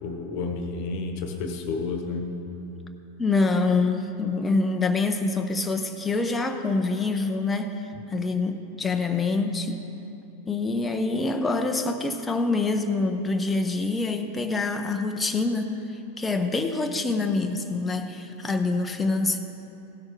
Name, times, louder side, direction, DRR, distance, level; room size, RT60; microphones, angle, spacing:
voice 1, 0.0-2.3, left 4 dB, 45° left, 5 dB, 1.1 m, -31 dB
voice 2, 3.2-9.8 10.5-19.4, left 3 dB, 10° left, 5 dB, 0.6 m, -26 dB
16.0 x 6.4 x 4.7 m, 2.9 s
figure-of-eight pair, 90°, 0 cm